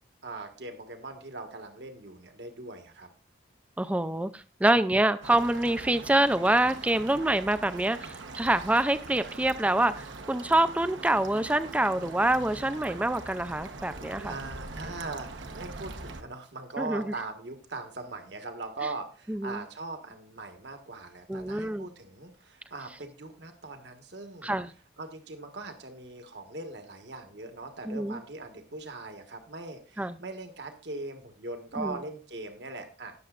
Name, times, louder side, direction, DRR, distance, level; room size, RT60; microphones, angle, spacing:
voice 1, 0.2-3.1 4.7-5.1 14.2-33.1, right 3 dB, 70° right, 5 dB, 1.4 m, -40 dB
voice 2, 3.8-14.3 16.8-17.0 19.3-19.6 21.3-21.9 24.4-24.7 27.9-28.2 30.0-30.2 31.8-32.0, right 1 dB, 5° right, 12 dB, 0.3 m, -26 dB
sound 1, 5.2-16.2, right 3 dB, 90° right, 1.0 m, -42 dB
18.0 x 6.9 x 2.5 m, 0.36 s
head